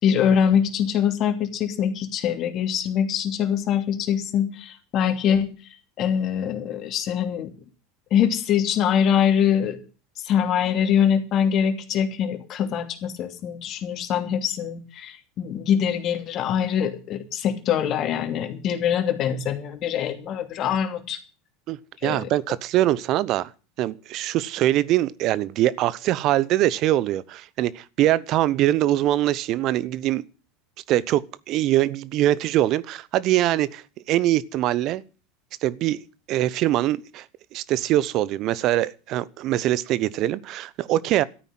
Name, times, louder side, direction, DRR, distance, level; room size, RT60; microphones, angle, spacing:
voice 1, 0.0-5.5 6.0-7.5 8.1-9.8 10.2-21.2 22.0-22.3, left 8 dB, 45° left, 2.8 m, -23 dB
voice 2, 22.0-23.5 23.8-30.2 30.9-35.0 35.6-36.0 36.3-37.2 37.5-41.2, right 14 dB, 50° right, 0.8 m, -23 dB
13.0 x 9.3 x 7.5 m
hypercardioid pair, 85°, 0 cm